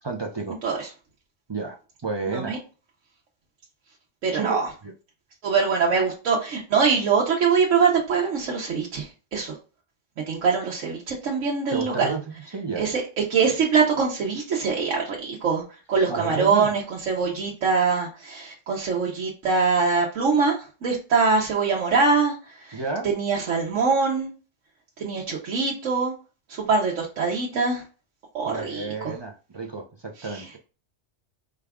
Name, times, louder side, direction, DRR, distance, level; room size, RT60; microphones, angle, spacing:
voice 1, 0.0-0.6 1.5-2.6 4.3-4.6 4.8-4.9 11.7-12.9 16.1-16.7 22.7-23.1 28.5-30.6, right 4 dB, 40° right, 0 dB, 0.3 m, -31 dB
voice 2, 2.3-2.6 4.2-4.7 5.4-9.5 10.3-12.1 12.8-13.0 13.3-15.6 15.9-20.6 20.8-22.3 22.7-24.3 25.0-26.1 26.5-27.8 28.3-29.1 30.2-30.4, right 5 dB, 90° right, -3 dB, 1.2 m, -23 dB
5.0 x 2.4 x 3.4 m, 0.33 s
omnidirectional pair, 1.3 m